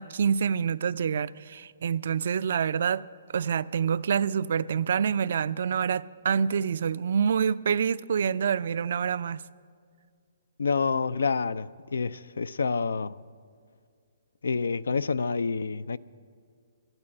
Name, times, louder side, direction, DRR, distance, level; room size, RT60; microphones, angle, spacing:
voice 1, 0.0-3.0 3.3-9.4, right 7 dB, 65° right, 0.3 m, -27 dB
voice 2, 10.6-13.2 14.4-16.0, left 5 dB, 85° left, 0.3 m, -28 dB
12.5 x 9.1 x 8.6 m
hypercardioid pair, 145°, 0 cm